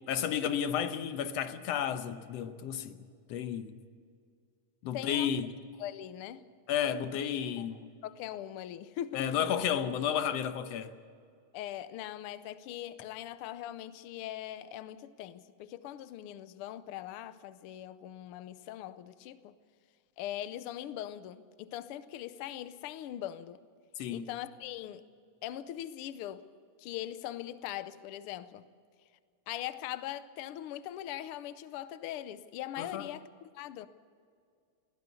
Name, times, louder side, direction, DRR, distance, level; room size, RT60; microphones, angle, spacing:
voice 1, 0.1-3.0 3.3-3.7 4.8-5.5 6.7-7.9 9.1-11.0 24.0-24.3 32.8-33.1, left 9 dB, 65° left, 1.9 m, -32 dB
voice 2, 4.9-5.3 5.8-6.4 7.6-7.7 8.0-9.5 11.5-19.6 20.2-23.6 24.1-25.0 25.4-26.5 26.8-28.6 29.5-33.9, left 12 dB, 90° left, 1.2 m, -41 dB
21.0 x 16.5 x 8.3 m
omnidirectional pair, 3.4 m